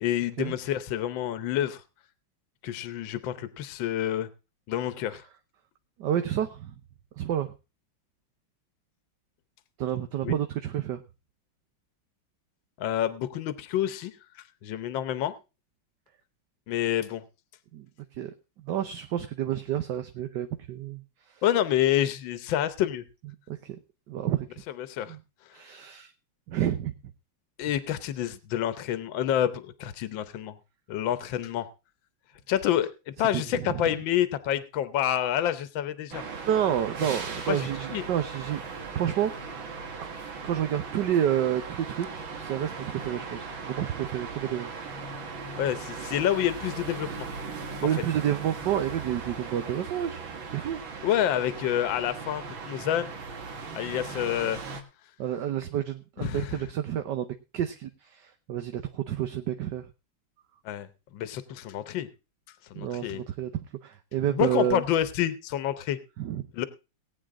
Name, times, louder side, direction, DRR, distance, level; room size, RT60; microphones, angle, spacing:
voice 1, 0.0-1.8 2.6-4.3 4.7-5.2 10.2-10.3 12.8-14.1 14.6-15.3 16.7-17.2 21.4-23.0 24.8-25.2 27.6-30.5 30.9-31.7 32.5-32.9 33.2-36.2 37.5-38.0 45.6-47.3 51.0-53.1 53.7-54.6 56.2-56.6 60.7-60.9 61.1-62.1 62.7-63.2 64.3-66.0 66.5-66.7, left 11 dB, 80° left, 13 dB, 1.6 m, -28 dB
voice 2, 6.0-6.7 7.2-7.5 9.8-11.0 17.7-17.8 18.2-18.3 18.6-21.0 23.5-23.8 24.1-24.5 25.1-25.2 25.5-26.1 26.5-26.9 33.3-33.8 36.5-39.5 40.4-44.7 47.8-50.2 50.5-50.8 55.2-59.9 62.8-63.5 63.8-64.8 66.2-66.4, right 10 dB, 65° right, 8 dB, 1.5 m, -29 dB
sound 1, 36.1-54.8, right 5 dB, 85° right, 2.5 m, -38 dB
19.0 x 8.8 x 3.7 m, 0.30 s
omnidirectional pair, 2.1 m